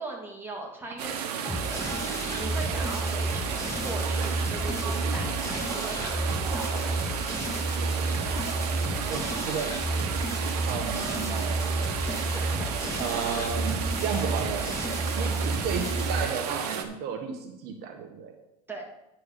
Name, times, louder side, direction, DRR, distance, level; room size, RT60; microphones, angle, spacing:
voice 1, 0.0-7.3 12.1-13.4 15.1-15.5 18.7-18.8, right 2 dB, 10° right, -1 dB, 2.6 m, -40 dB
sound 1, 1.0-16.9, right 8 dB, 85° right, 1.2 m, -33 dB
sound 2, 1.5-16.2, right 1 dB, 15° left, 2.3 m, -31 dB
voice 2, 9.1-9.8 10.7-11.6 13.0-14.7 15.2-18.3, right 6 dB, 55° right, 3 dB, 1.3 m, -33 dB
9.7 x 4.7 x 6.7 m, 0.90 s
supercardioid pair, 110°, 20 cm